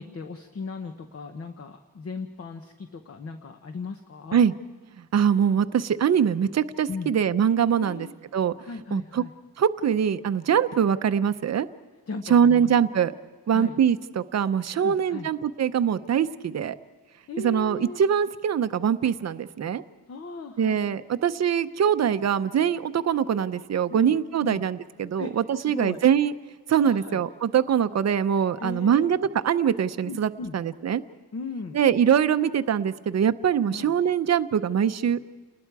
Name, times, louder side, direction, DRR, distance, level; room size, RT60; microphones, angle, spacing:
voice 1, 0.0-4.4 6.9-7.1 7.8-8.1 8.6-9.3 12.1-12.9 13.5-13.8 14.8-15.3 17.3-18.0 20.1-20.8 23.9-24.6 25.2-26.0 26.8-27.2 28.6-29.1 30.0-30.6 31.3-31.8 33.7-33.9, left 4 dB, 40° left, 7 dB, 0.9 m, -37 dB
voice 2, 5.1-8.1 8.3-8.5 8.9-9.2 9.6-11.7 12.3-13.1 13.5-16.8 17.4-19.8 20.6-26.3 26.7-29.2 29.4-31.0 31.7-35.2, right 8 dB, 45° right, 12 dB, 0.6 m, -23 dB
29.5 x 20.0 x 4.7 m, 1.4 s
wide cardioid pair, 170°, 36 cm